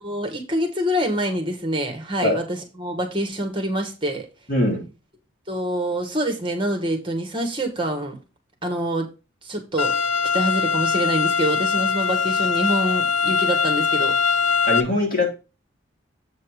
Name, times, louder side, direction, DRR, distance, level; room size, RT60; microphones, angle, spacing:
voice 1, 0.0-4.3 5.5-8.2 8.6-9.1 9.4-10.0 10.3-14.1, right 1 dB, 25° right, 1.8 m, -26 dB
voice 2, 4.5-4.9 14.7-15.3, left 2 dB, 45° left, 3.2 m, -21 dB
sound 1, 9.8-14.8, left 6 dB, 90° left, 1.1 m, -21 dB
8.2 x 4.2 x 5.0 m
head